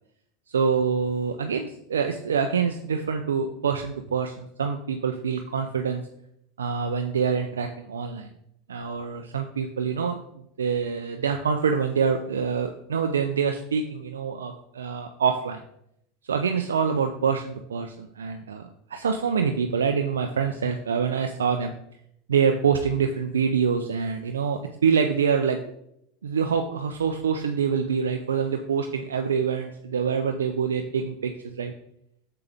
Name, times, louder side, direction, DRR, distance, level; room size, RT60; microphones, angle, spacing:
voice 1, 0.5-6.0 6.6-8.3 8.7-10.2 10.6-15.6 16.2-21.7 22.3-25.6 26.2-31.7, right 6 dB, 85° right, 5 dB, 0.4 m, -25 dB
6.9 x 6.8 x 3.4 m, 0.75 s
hypercardioid pair, 85°, 0 cm